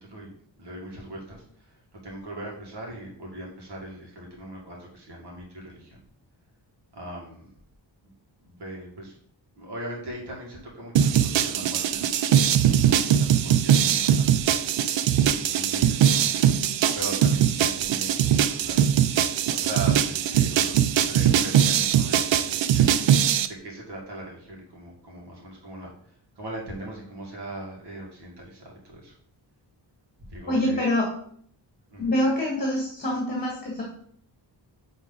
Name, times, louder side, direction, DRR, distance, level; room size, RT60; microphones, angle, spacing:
voice 1, 0.6-6.0 6.9-7.5 8.4-9.2 9.6-12.7 12.9-14.4 15.0-16.6 16.9-18.9 19.5-20.8 21.1-22.9 23.4-29.1 30.3-30.8 31.9-32.1, right 1 dB, 65° right, -2 dB, 2.2 m, -40 dB
sound 1, 11.0-23.5, right 9 dB, 80° right, 0.6 m, -21 dB
voice 2, 30.5-31.1 32.0-33.8, left 1 dB, 20° left, -2 dB, 1.6 m, -25 dB
9.3 x 3.6 x 3.9 m, 0.62 s
wide cardioid pair, 180°, 44 cm